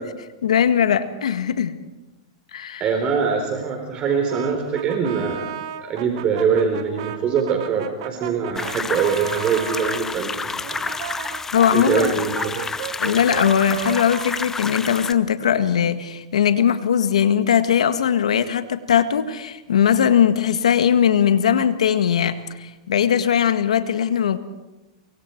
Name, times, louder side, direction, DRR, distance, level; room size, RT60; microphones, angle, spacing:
voice 1, 0.4-1.8 2.5-2.9 11.5-12.1 13.0-24.4, left 8 dB, 85° left, 10 dB, 1.7 m, -19 dB
voice 2, 2.8-5.5 5.8-10.9 11.7-12.6, right 6 dB, 30° right, 3 dB, 4.0 m, -23 dB
Brass instrument, 4.3-10.0 10.6-15.4, right 10 dB, 60° right, 2.2 m, -34 dB
sound 1, 8.5-15.1, left 4 dB, 10° left, 0.8 m, -29 dB
28.5 x 24.0 x 4.6 m, 1.0 s
hypercardioid pair, 125°, 3 cm